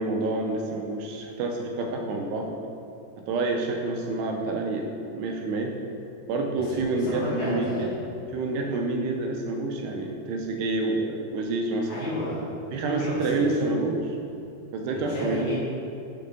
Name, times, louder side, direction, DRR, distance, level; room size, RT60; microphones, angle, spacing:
voice 1, 0.0-2.5 3.3-5.7 6.3-7.9 8.3-11.9 12.7-14.2 14.7-15.5, right 3 dB, 85° right, 2 dB, 2.4 m, -28 dB
voice 2, 7.0-8.0 11.9-12.4 12.9-13.5 14.9-15.5, left 1 dB, 55° left, -9 dB, 3.1 m, -32 dB
6.7 x 5.3 x 5.1 m, 2.6 s
omnidirectional pair, 5.2 m